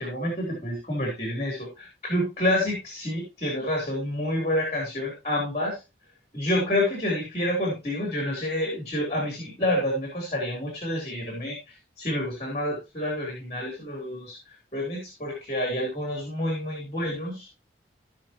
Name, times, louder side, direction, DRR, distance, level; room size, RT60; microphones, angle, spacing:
voice 1, 0.0-5.8 6.3-11.6 12.0-14.4 14.7-17.5, left 1 dB, 35° left, -1 dB, 3.7 m, -28 dB
17.0 x 5.7 x 3.0 m, 0.27 s
head